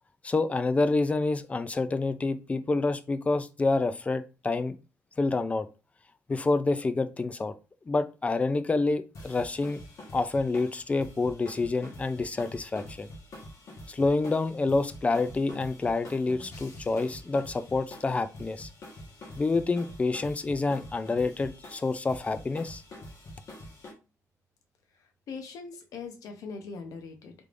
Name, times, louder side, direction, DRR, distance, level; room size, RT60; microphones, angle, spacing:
voice 1, 0.2-4.8 5.2-5.7 6.3-7.5 7.9-9.8 10.1-13.1 13.9-18.7 19.4-22.8, left 3 dB, 25° left, 12 dB, 0.3 m, -28 dB
sound 1, 9.1-23.9, left 1 dB, 60° left, 1.3 m, -46 dB
voice 2, 24.9-27.5, left 4 dB, 80° left, 4 dB, 0.7 m, -42 dB
3.4 x 3.2 x 2.5 m, 0.32 s
cardioid pair, 115°, 6 cm